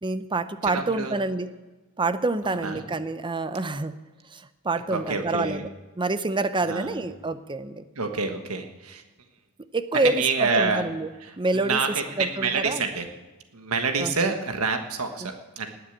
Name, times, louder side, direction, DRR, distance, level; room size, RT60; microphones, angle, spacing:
voice 1, 0.0-1.5 2.0-4.0 4.3-5.7 6.0-7.8 9.7-11.1 11.4-11.8 12.2-12.9 14.0-14.3 15.2-15.3, right 3 dB, 20° right, 13 dB, 0.6 m, -27 dB
voice 2, 0.6-1.1 2.4-2.8 4.9-5.6 6.7-7.0 8.0-9.0 9.9-10.8 11.5-13.1 13.5-15.7, right 4 dB, 75° right, 5 dB, 1.4 m, -27 dB
19.5 x 6.9 x 8.9 m, 1.2 s
head